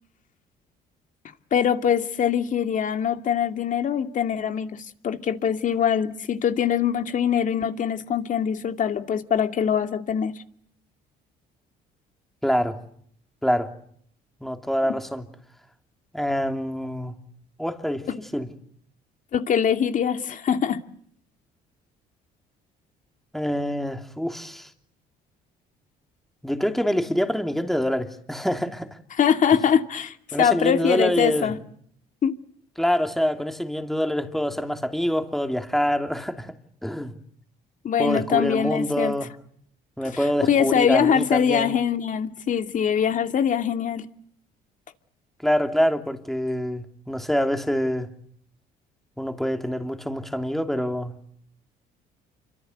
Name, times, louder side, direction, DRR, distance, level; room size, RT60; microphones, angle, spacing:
voice 1, 1.5-10.3 19.3-20.8 29.1-31.6 32.2-32.3 37.8-39.1 40.1-44.0, left 8 dB, 50° left, 2.5 m, -23 dB
voice 2, 12.4-12.8 13.4-13.7 14.4-15.2 16.1-17.2 17.6-18.5 23.3-24.7 26.4-28.9 30.3-31.5 32.8-36.5 36.8-37.1 38.0-39.3 40.0-41.8 45.4-48.1 49.2-51.1, equal, ahead, 2.9 m, -25 dB
29.0 x 25.5 x 8.0 m
cardioid pair, 110°, 17 cm